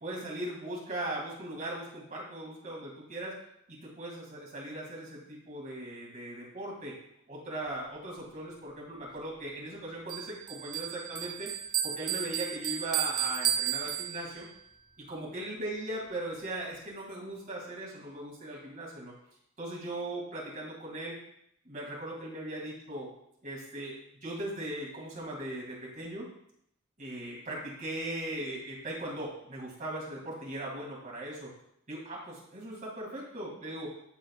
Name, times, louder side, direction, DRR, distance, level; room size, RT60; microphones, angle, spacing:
voice 1, 0.0-3.4 3.7-6.9 7.3-11.5 11.8-14.4 15.0-19.1 19.6-21.2 21.6-23.1 23.4-24.0 24.2-26.3 27.0-31.5 31.9-34.1, right 1 dB, 40° right, -3 dB, 2.4 m, -39 dB
Bell, 10.1-14.6, right 10 dB, 20° right, 0.4 m, -33 dB
12.0 x 4.1 x 2.4 m, 0.74 s
head